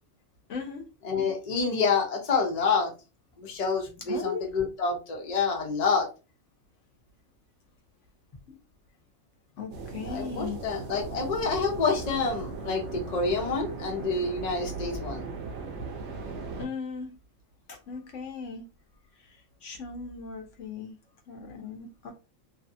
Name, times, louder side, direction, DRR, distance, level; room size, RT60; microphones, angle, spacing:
voice 1, 0.5-0.8 4.1-4.4 8.5-8.6 9.6-10.6 16.6-17.1 17.7-18.7 19.2-21.0 21.3-22.1, left 5 dB, 70° left, 3 dB, 1.1 m, -38 dB
voice 2, 1.0-2.9 3.4-6.1 10.1-15.2, left 4 dB, 40° left, 0 dB, 0.8 m, -28 dB
sound 1, 9.7-16.7, right 4 dB, 65° right, 0.8 m, -38 dB
2.6 x 2.6 x 2.5 m, 0.30 s
omnidirectional pair, 1.4 m